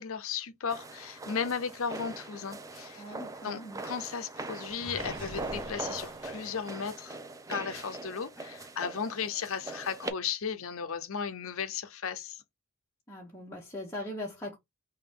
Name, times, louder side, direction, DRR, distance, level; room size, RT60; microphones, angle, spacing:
voice 1, 0.0-3.0 3.4-7.2 7.5-12.4, left 6 dB, 65° left, 0.6 m, -35 dB
sound 1, 0.7-10.1, right 2 dB, 15° right, 0.4 m, -41 dB
voice 2, 2.9-3.8 13.1-14.6, left 1 dB, 10° left, 1.0 m, -40 dB
Gurgling, 4.7-6.9, right 1 dB, 55° right, 1.5 m, -45 dB
3.8 x 2.7 x 3.7 m
head